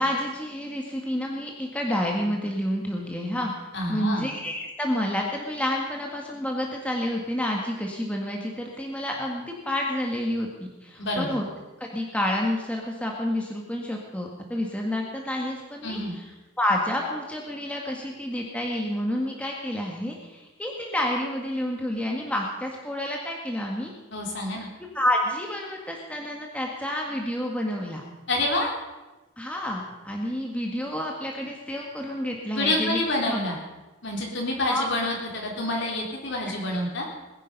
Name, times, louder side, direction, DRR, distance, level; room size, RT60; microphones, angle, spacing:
voice 1, 0.0-11.4 11.8-16.3 16.6-23.9 24.9-28.0 29.4-33.0 33.3-33.4 34.6-34.9, left 1 dB, 5° left, 0 dB, 1.7 m, -29 dB
voice 2, 3.7-4.3 11.0-11.4 15.8-16.1 24.1-24.7 28.3-28.7 32.5-33.6 34.0-37.1, left 1 dB, 60° left, -1 dB, 3.8 m, -27 dB
20.0 x 10.5 x 5.4 m, 1.1 s
head